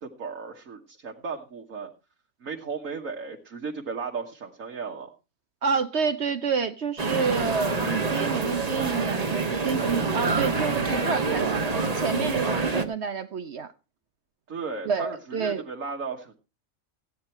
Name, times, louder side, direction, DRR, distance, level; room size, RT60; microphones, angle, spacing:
voice 1, 0.0-1.9 2.4-5.1 11.3-11.6 14.5-16.3, right 5 dB, 75° right, 1.8 m, -35 dB
voice 2, 5.6-13.7 14.9-15.6, right 5 dB, 60° right, 1.1 m, -29 dB
sound 1, 7.0-12.8, right 3 dB, 30° right, 1.3 m, -26 dB
15.0 x 9.7 x 4.5 m
omnidirectional pair, 1.4 m